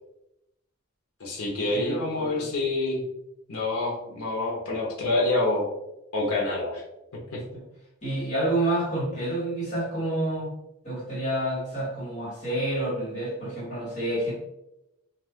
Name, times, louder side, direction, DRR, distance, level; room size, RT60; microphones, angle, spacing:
voice 1, 1.2-3.0 3.5-5.7 6.1-6.8 7.3-7.4, left 2 dB, 80° left, -3 dB, 0.7 m, -27 dB
voice 2, 1.7-2.5 7.5-7.6 8.0-10.5 10.8-14.3, right 1 dB, 30° left, -7 dB, 1.5 m, -29 dB
2.5 x 2.4 x 3.5 m, 0.89 s
head